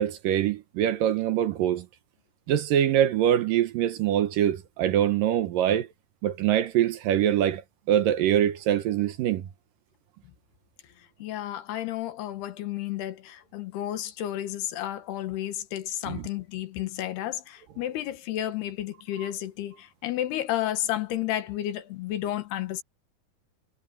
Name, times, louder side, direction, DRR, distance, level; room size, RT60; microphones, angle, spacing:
voice 1, 0.0-1.8 2.5-5.9 6.2-7.6 7.9-9.4 16.1-16.2 19.2-19.3, right 11 dB, 70° right, 2.4 m, -24 dB
voice 2, 11.2-19.8 20.0-22.8, left 13 dB, 85° left, 3.5 m, -32 dB
omnidirectional pair, 4.5 m